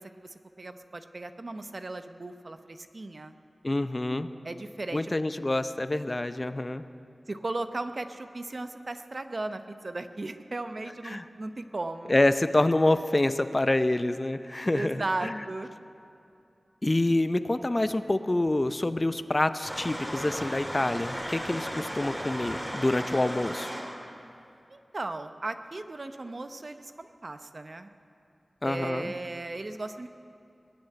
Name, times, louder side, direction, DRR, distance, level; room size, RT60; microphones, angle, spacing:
voice 1, 0.2-3.3 4.4-5.2 7.3-12.2 14.7-15.7 24.7-27.9 28.6-30.1, right 2 dB, 55° right, 9 dB, 0.7 m, -36 dB
voice 2, 3.6-4.3 4.9-6.8 11.0-11.2 12.1-15.4 16.8-23.7 28.6-29.1, left 2 dB, 35° left, 12 dB, 0.6 m, -27 dB
sound 1, 19.6-24.0, equal, 10° right, 2.9 m, -36 dB
20.5 x 7.3 x 9.1 m, 2.6 s
wide cardioid pair, 55°, 0 cm